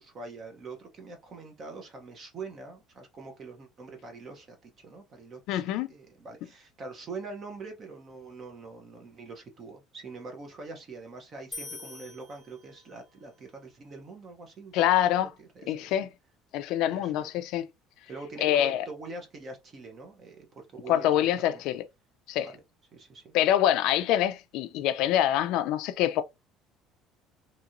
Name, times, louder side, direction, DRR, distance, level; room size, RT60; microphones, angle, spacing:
voice 1, 0.0-16.0 16.9-17.3 18.1-21.1 21.5-21.6 22.4-22.5 22.9-23.3, right 3 dB, 30° right, 0.7 m, -44 dB
voice 2, 5.5-5.9 14.7-15.3 15.7-16.1 16.5-17.7 18.4-18.8 20.9-21.8 22.3-22.5 23.3-26.2, left 11 dB, 65° left, 0.4 m, -25 dB
sound 1, 11.5-13.1, left 4 dB, 15° left, 0.7 m, -44 dB
2.9 x 2.7 x 2.5 m
cardioid pair, 160°, 0 cm